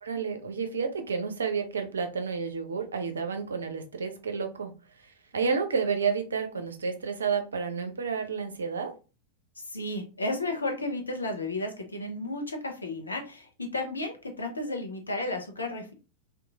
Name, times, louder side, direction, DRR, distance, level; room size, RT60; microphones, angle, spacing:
voice 1, 0.0-4.7 5.0-8.9, right 5 dB, 70° right, 6 dB, 0.5 m, -30 dB
voice 2, 9.7-15.9, left 2 dB, 80° left, 2 dB, 0.6 m, -33 dB
3.0 x 2.3 x 2.3 m, 0.32 s
figure-of-eight pair, 90°, 0 cm